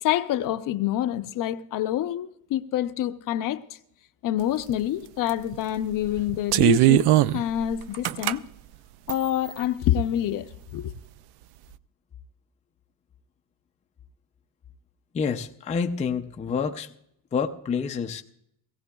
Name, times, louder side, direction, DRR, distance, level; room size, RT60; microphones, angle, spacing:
voice 1, 0.0-3.6 4.2-8.4 9.1-10.9, left 12 dB, 55° left, 0.7 m, -27 dB
sound 1, 4.7-4.8 5.3-5.6 6.0-8.3 9.1-9.6, right 15 dB, 85° right, 0.5 m, -20 dB
voice 2, 15.1-16.9 17.3-18.2, left 6 dB, 20° left, 0.4 m, -28 dB
18.5 x 16.5 x 2.3 m
cardioid pair, 165°, 38 cm